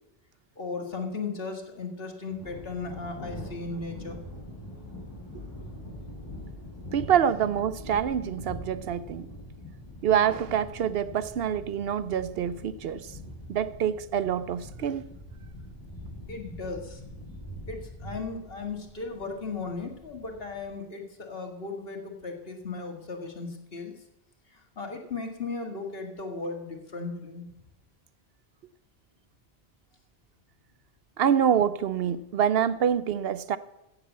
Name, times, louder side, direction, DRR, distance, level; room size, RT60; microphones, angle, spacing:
voice 1, 0.6-4.6 16.3-17.2 17.7-23.9 24.5-27.5, left 4 dB, 65° left, 2.0 m, -36 dB
Thunder, 2.3-20.7, left 1 dB, 20° left, 5.4 m, -43 dB
voice 2, 6.9-9.3 10.0-13.1 13.5-15.0 31.2-33.6, right 9 dB, 70° right, 0.8 m, -26 dB
14.5 x 6.8 x 8.2 m
omnidirectional pair, 1.1 m